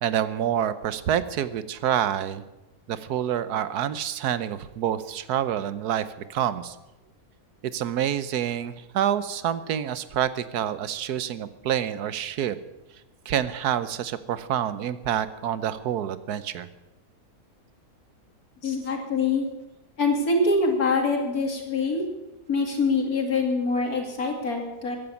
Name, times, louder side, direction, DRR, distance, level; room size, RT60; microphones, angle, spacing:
voice 1, 0.0-2.4 2.9-6.7 7.6-12.6 13.3-16.7, right 10 dB, 85° right, 14 dB, 1.3 m, -27 dB
voice 2, 18.6-19.5 20.0-22.0 22.5-25.0, left 3 dB, 70° left, 2 dB, 3.0 m, -24 dB
15.0 x 10.5 x 7.0 m, 1.0 s
omnidirectional pair, 1.6 m